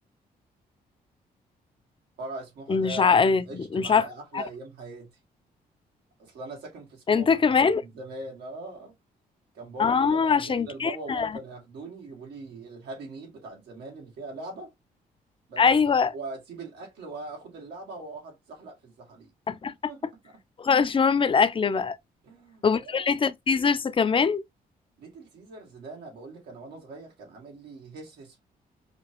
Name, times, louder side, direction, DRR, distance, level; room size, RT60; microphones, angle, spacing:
voice 1, 2.2-5.1 6.2-7.3 7.8-8.9 9.5-14.7 15.5-15.6 16.0-19.3 19.7-20.4 22.2-23.1 25.0-28.4, right 2 dB, 85° right, 2.2 m, -41 dB
voice 2, 2.7-4.1 4.3-4.4 7.1-7.8 9.8-11.3 15.6-16.1 19.5-19.7 20.6-22.0 22.6-24.4, left 5 dB, 30° left, 0.5 m, -22 dB
4.9 x 2.3 x 3.0 m
cardioid pair, 80°, 17 cm